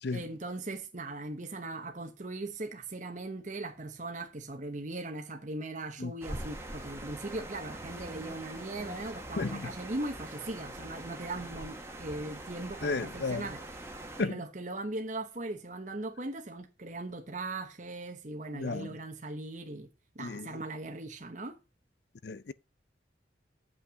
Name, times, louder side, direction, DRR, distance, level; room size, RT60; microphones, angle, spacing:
voice 1, 0.1-19.9 20.1-21.6, right 2 dB, 40° right, 1.1 m, -39 dB
sound 1, 6.2-14.2, right 1 dB, 15° right, 1.4 m, -43 dB
voice 2, 9.4-9.7 12.8-13.4 14.2-14.3 18.5-18.9 20.2-20.5 22.2-22.5, left 3 dB, 60° left, 0.5 m, -33 dB
8.1 x 5.7 x 6.2 m
head